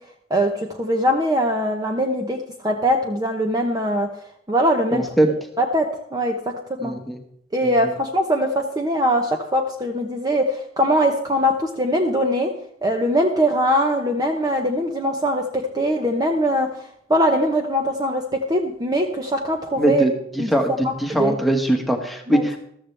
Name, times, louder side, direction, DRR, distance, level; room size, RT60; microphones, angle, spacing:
voice 1, 0.3-2.4 2.6-4.1 4.5-5.0 5.6-6.4 6.8-7.0 7.5-12.5 12.8-16.8 17.1-20.1 20.4-20.5 20.8-21.4 22.3-22.4, equal, 20° right, 3 dB, 0.9 m, -21 dB
voice 2, 4.9-5.3 6.8-7.2 7.6-7.7 19.8-20.1 20.5-22.6, right 1 dB, ahead, 2 dB, 1.5 m, -21 dB
14.0 x 14.0 x 3.4 m, 0.72 s
head